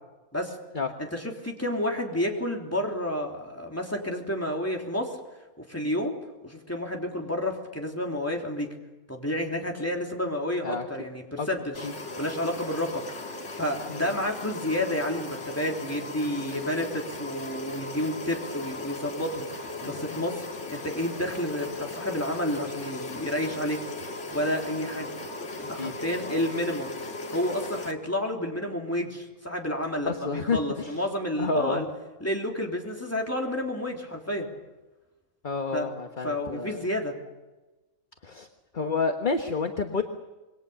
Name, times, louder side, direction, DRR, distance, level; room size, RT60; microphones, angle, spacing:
voice 1, 1.0-5.1 5.7-6.2 6.4-8.7 9.1-11.9 12.2-13.0 13.3-23.8 24.3-25.1 25.6-26.9 27.3-31.9 32.2-34.5 35.7-35.9 36.2-37.1, left 1 dB, 10° left, 0 dB, 3.4 m, -30 dB
sound 1, 11.7-27.9, left 2 dB, 55° left, 2.2 m, -37 dB
voice 2, 25.8-26.4 30.0-31.0 31.4-31.8 35.4-36.8 38.2-38.5 38.7-40.0, left 4 dB, 35° left, 5 dB, 1.4 m, -29 dB
27.0 x 22.0 x 7.0 m, 1.1 s
omnidirectional pair, 1.5 m